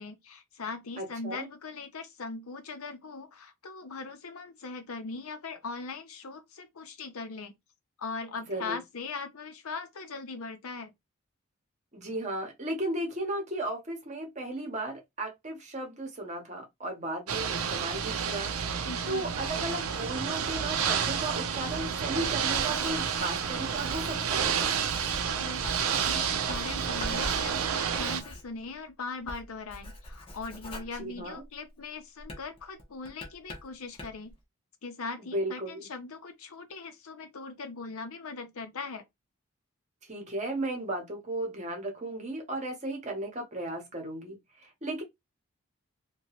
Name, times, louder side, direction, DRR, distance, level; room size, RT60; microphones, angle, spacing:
voice 1, 0.0-7.5 8.0-10.9 18.8-19.3 25.4-34.3 34.8-39.0, left 4 dB, 80° left, 0.6 m, -40 dB
voice 2, 1.0-1.4 8.5-8.8 11.9-18.5 19.1-24.8 30.9-31.4 35.3-35.8 40.0-45.0, right 1 dB, 35° right, 0.8 m, -35 dB
Ocean / Boat Water vehicle, 17.3-28.2, right 7 dB, 75° right, 0.5 m, -30 dB
Writing, 22.3-28.9 29.2-31.7 32.2-34.3, left 1 dB, 25° left, 0.6 m, -44 dB
2.8 x 2.2 x 2.8 m
head